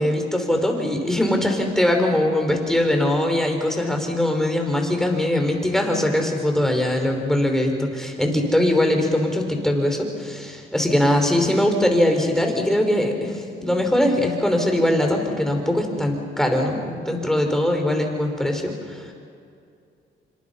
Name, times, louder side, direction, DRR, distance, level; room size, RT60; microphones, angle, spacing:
voice 1, 0.0-19.1, left 1 dB, ahead, 3 dB, 5.3 m, -21 dB
27.5 x 25.5 x 5.7 m, 2.4 s
cardioid pair, 90°, 20 cm